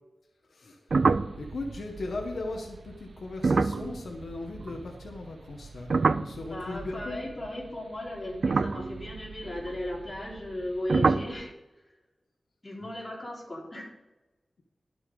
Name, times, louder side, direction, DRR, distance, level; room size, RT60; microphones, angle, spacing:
voice 1, 0.5-0.8 1.4-7.2, left 2 dB, 80° left, 1 dB, 1.5 m, -38 dB
sound 1, 0.9-5.2 5.5-7.7 8.3-10.6 10.9-11.4, right 4 dB, 60° right, 0.4 m, -28 dB
voice 2, 6.5-11.5 12.6-13.9, left 1 dB, 25° left, -4 dB, 3.9 m, -36 dB
12.0 x 6.9 x 5.3 m, 1.1 s
wide cardioid pair, 120°, 0 cm